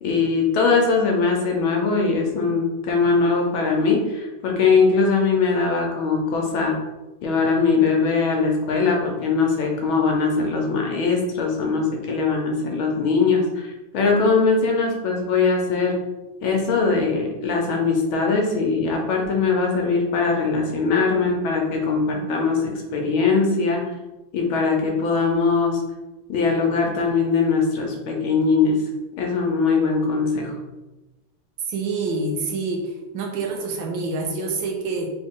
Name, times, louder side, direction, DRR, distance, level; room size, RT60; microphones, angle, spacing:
voice 1, 0.0-6.8 7.2-16.0 16.4-23.9 24.3-25.8 26.3-28.8 29.2-30.5, left 4 dB, 70° left, 0 dB, 1.5 m, -21 dB
voice 2, 31.7-35.1, right 3 dB, 70° right, 1 dB, 1.3 m, -27 dB
3.9 x 3.3 x 3.6 m, 1.1 s
omnidirectional pair, 2.4 m